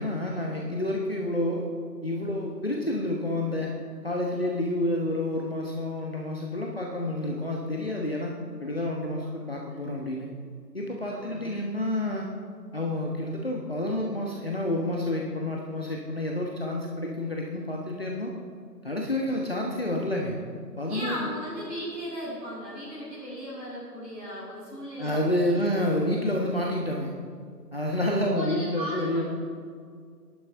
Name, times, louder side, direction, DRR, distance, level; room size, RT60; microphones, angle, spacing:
voice 1, 0.0-1.7 2.0-3.8 4.0-8.3 8.6-10.3 10.7-12.3 12.7-18.3 18.8-20.4 20.8-21.3 25.0-27.1 27.7-29.2, left 1 dB, 35° left, -1 dB, 1.1 m, -29 dB
voice 2, 9.2-9.8 11.1-11.6 20.9-26.0 28.3-29.2, equal, 5° right, -12 dB, 2.7 m, -37 dB
20.5 x 11.0 x 3.7 m, 2.1 s
figure-of-eight pair, 160°, 50 cm